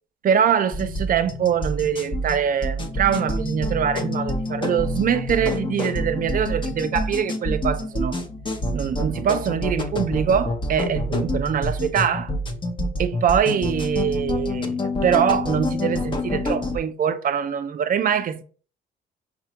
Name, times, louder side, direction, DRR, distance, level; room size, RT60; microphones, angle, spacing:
voice 1, 0.2-8.2 8.7-12.3 13.0-18.4, right 8 dB, 45° right, 0.4 m, -23 dB
sound 1, 0.7-16.8, left 1 dB, 25° left, 0.6 m, -27 dB
5.6 x 2.1 x 2.8 m
cardioid pair, 90°, 20 cm